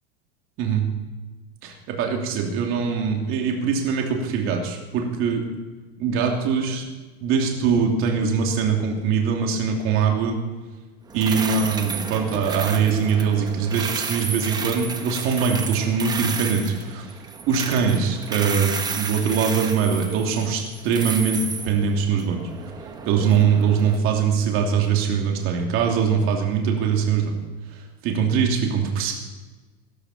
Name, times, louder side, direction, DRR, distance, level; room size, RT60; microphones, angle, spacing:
voice 1, 0.6-0.9 1.6-5.4 6.0-6.8 7.2-10.4 11.1-17.1 17.5-22.4 23.0-27.4 27.7-29.1, right 6 dB, 45° right, 1 dB, 2.9 m, -22 dB
sound 1, 11.1-24.0, right 5 dB, 15° right, 0.9 m, -32 dB
17.5 x 12.5 x 4.4 m, 1.3 s
supercardioid pair, 155°, 31 cm